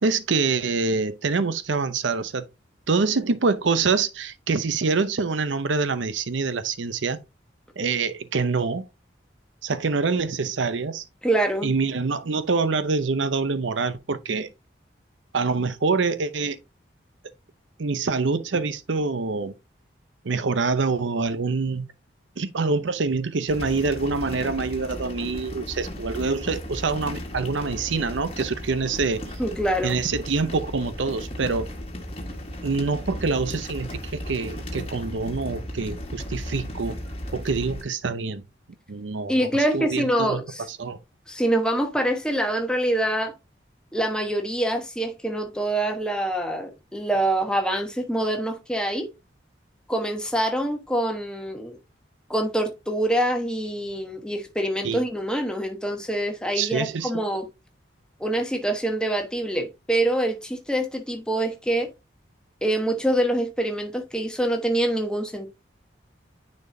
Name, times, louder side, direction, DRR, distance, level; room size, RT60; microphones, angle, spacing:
voice 1, 0.0-2.4 2.9-7.2 7.8-8.8 9.6-11.0 11.6-14.5 15.3-16.6 17.8-19.5 20.2-21.9 22.4-29.2 29.8-31.7 32.6-37.0 37.3-38.4 38.9-41.0 54.8-55.0 56.5-57.2, right 4 dB, 80° right, 0.7 m, -25 dB
voice 2, 11.2-11.7 29.4-30.0 39.3-40.6 41.3-43.3 43.9-49.1 49.9-51.8 52.3-57.5 58.2-61.9 62.6-65.5, right 1 dB, 5° left, 1.1 m, -25 dB
sound 1, 23.5-37.8, left 1 dB, 30° left, 1.5 m, -35 dB
9.6 x 4.3 x 2.7 m
head